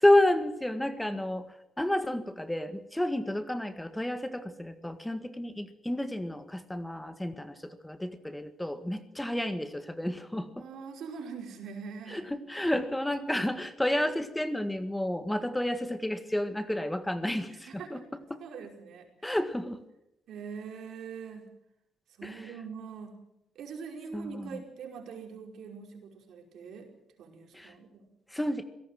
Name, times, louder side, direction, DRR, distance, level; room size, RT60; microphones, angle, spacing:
voice 1, 0.0-10.7 12.1-18.4 19.2-19.8 22.2-22.5 24.1-24.6 27.5-27.7 28.3-28.6, left 1 dB, 5° left, 10 dB, 1.7 m, -30 dB
voice 2, 10.6-12.3 17.2-18.0 18.4-19.4 20.3-21.5 22.2-23.2 23.6-26.9 27.2-28.1, right 6 dB, 75° right, 3 dB, 5.2 m, -43 dB
25.0 x 17.5 x 7.6 m, 0.84 s
cardioid pair, 90°, 0 cm